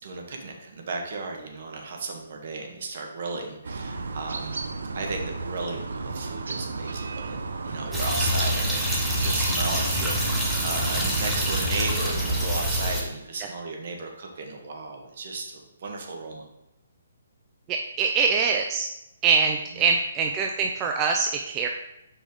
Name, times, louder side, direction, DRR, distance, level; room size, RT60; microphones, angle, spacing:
voice 1, 0.0-4.6 4.9-7.4 7.7-16.4 19.8-19.9, right 3 dB, 55° right, 2 dB, 1.2 m, -35 dB
sound 1, 3.6-12.5, right 3 dB, 85° right, 0.6 m, -33 dB
sound 2, 7.9-13.0, equal, 5° right, 1.0 m, -26 dB
voice 2, 17.7-18.9 19.2-21.7, right 5 dB, 20° right, 2 dB, 0.4 m, -24 dB
5.3 x 4.9 x 3.6 m, 0.88 s
hypercardioid pair, 160°, 0 cm